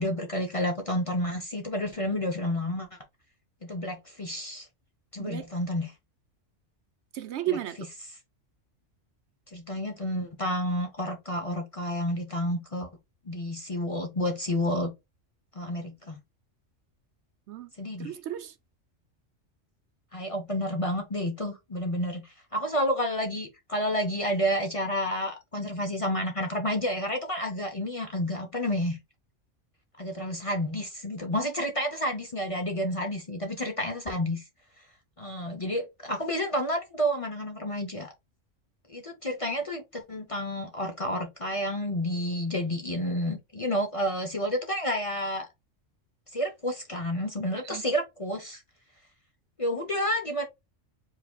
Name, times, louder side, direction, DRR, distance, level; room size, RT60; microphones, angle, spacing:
voice 1, 0.0-2.9 3.6-4.7 5.1-5.9 7.5-7.6 9.5-12.9 13.3-14.9 15.6-16.2 17.8-18.1 20.1-29.0 30.0-34.4 35.2-38.1 38.9-45.5 46.3-48.6 49.6-50.4, equal, 35° left, 0.7 m, -30 dB
voice 2, 7.1-7.9 17.5-17.7 18.0-18.5 47.6-47.8, right 12 dB, 70° right, 0.8 m, -33 dB
4.7 x 4.1 x 2.3 m
omnidirectional pair, 1.3 m